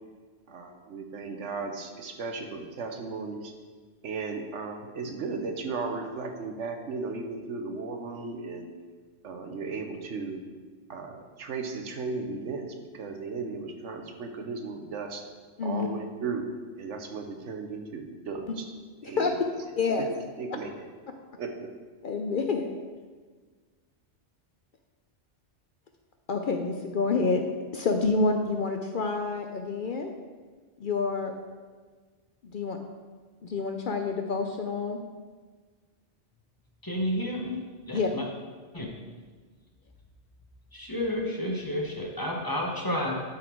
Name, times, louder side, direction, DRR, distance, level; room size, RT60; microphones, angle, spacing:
voice 1, 0.5-3.5 4.0-8.7 9.2-10.4 10.9-15.3 15.6-16.5 16.8-18.7 19.0-20.1 20.4-20.9 21.4-21.7, right 4 dB, 80° right, 4 dB, 1.2 m, -36 dB
voice 2, 19.8-20.1 22.0-22.7 26.3-27.4 27.7-30.1 30.8-31.3 32.5-32.8 33.4-35.0 37.9-38.1, left 4 dB, 55° left, 4 dB, 0.6 m, -28 dB
voice 3, 36.8-38.2 38.7-38.9 40.7-43.1, left 1 dB, 20° left, -1 dB, 0.9 m, -31 dB
11.5 x 4.2 x 4.5 m, 1.4 s
omnidirectional pair, 1.2 m